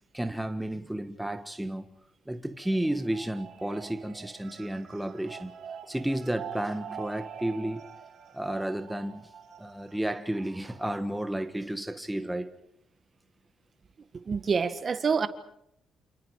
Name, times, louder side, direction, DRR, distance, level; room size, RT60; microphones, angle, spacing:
voice 1, 0.1-1.9 2.3-5.5 5.9-7.9 8.3-9.3 9.6-12.5, right 1 dB, 5° right, 1.4 m, -32 dB
sound 1, 2.6-11.0, right 7 dB, 70° right, 3.4 m, -45 dB
voice 2, 14.2-15.3, right 5 dB, 40° right, 1.7 m, -26 dB
29.0 x 28.5 x 4.9 m
cardioid pair, 90°, 0 cm